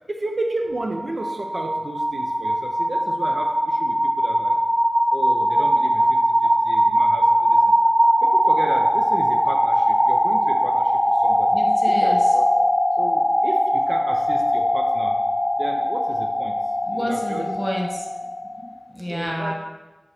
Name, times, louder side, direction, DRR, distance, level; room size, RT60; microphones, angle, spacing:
voice 1, 0.1-4.6 5.1-7.7 8.2-12.5 13.0-15.2 15.6-16.6 16.9-17.5 19.1-19.5, right 2 dB, 65° right, 2 dB, 0.5 m, -33 dB
sound 1, 0.8-18.7, equal, 30° right, 1.6 m, -20 dB
voice 2, 11.5-12.2 16.9-18.0 18.6-19.5, equal, 5° right, -1 dB, 1.3 m, -29 dB
7.3 x 2.9 x 4.8 m, 1.1 s
wide cardioid pair, 55°, 0 cm